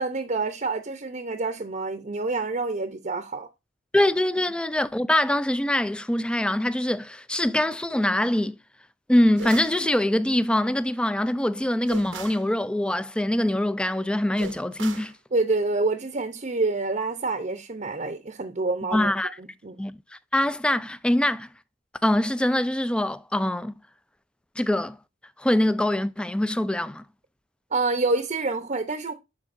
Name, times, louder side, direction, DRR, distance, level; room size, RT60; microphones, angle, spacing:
voice 1, 0.0-3.5 15.3-19.8 27.7-29.1, right 3 dB, 40° right, 0.7 m, -27 dB
voice 2, 3.9-8.5 9.1-15.1 18.9-19.3 19.8-20.0 20.3-21.5 22.0-23.7 24.6-25.0 25.4-27.0, left 1 dB, 5° left, 0.3 m, -23 dB
sound 1, 9.4-9.8 11.9-12.5 14.4-15.1, right 5 dB, 90° right, 0.9 m, -38 dB
11.5 x 4.5 x 2.5 m
head